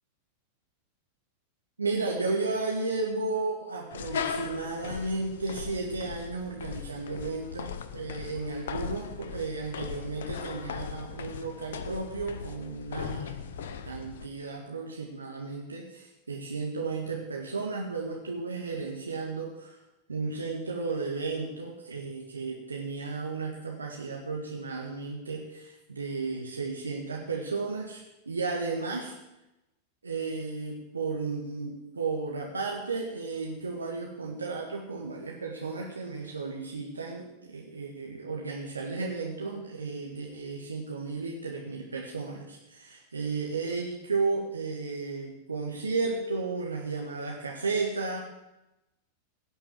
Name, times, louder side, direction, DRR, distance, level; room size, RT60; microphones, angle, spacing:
voice 1, 1.8-13.5 13.9-19.8 20.1-29.2 30.0-48.2, right 3 dB, 75° right, -1 dB, 1.8 m, -34 dB
sound 1, 3.9-14.3, left 7 dB, 60° left, 0.9 m, -38 dB
16.5 x 6.6 x 7.8 m, 0.94 s
figure-of-eight pair, 90°, 0 cm